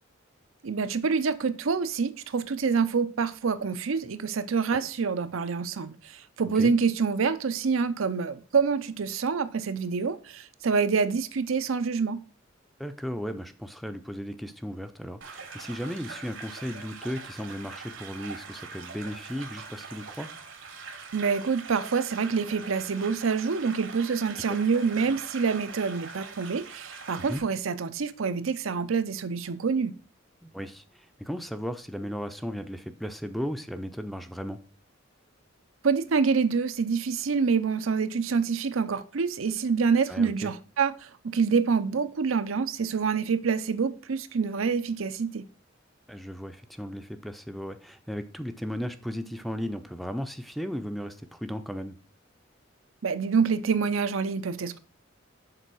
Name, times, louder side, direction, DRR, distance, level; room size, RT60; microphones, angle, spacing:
voice 1, 0.6-12.2 21.1-29.9 35.8-40.9 41.2-45.5 53.0-54.8, right 5 dB, 90° right, 0.6 m, -26 dB
voice 2, 12.8-20.3 24.5-24.6 27.2-27.4 30.4-34.6 40.1-40.5 46.1-52.0, equal, ahead, 0.5 m, -36 dB
sound 1, 15.2-27.4, right 5 dB, 70° right, 1.0 m, -43 dB
6.8 x 4.0 x 6.1 m
head